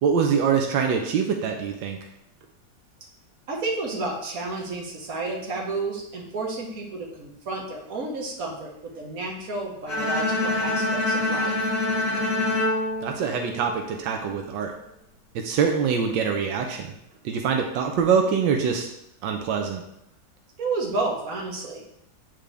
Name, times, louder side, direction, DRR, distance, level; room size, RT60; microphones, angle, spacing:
voice 1, 0.0-2.0 13.0-14.7 15.3-16.9 17.2-18.9 19.2-19.8, right 6 dB, 85° right, 3 dB, 1.4 m, -24 dB
voice 2, 3.5-11.6 20.6-21.8, right 3 dB, 50° right, -1 dB, 1.7 m, -31 dB
Bowed string instrument, 9.9-14.0, left 2 dB, 55° left, 2.4 m, -26 dB
8.7 x 3.8 x 3.3 m, 0.79 s
omnidirectional pair, 1.9 m